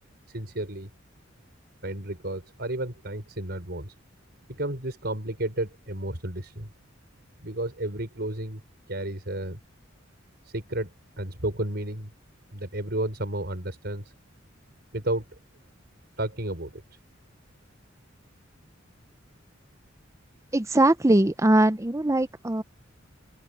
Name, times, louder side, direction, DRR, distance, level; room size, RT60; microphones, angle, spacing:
voice 1, 0.3-0.9 1.8-3.9 4.5-6.7 7.4-8.6 8.9-9.6 10.4-10.9 11.2-12.1 12.5-14.1 14.9-15.3 16.2-16.8, right 1 dB, 55° right, 5.2 m, -32 dB
voice 2, 20.5-22.6, right 1 dB, 15° right, 0.7 m, -21 dB
open air
head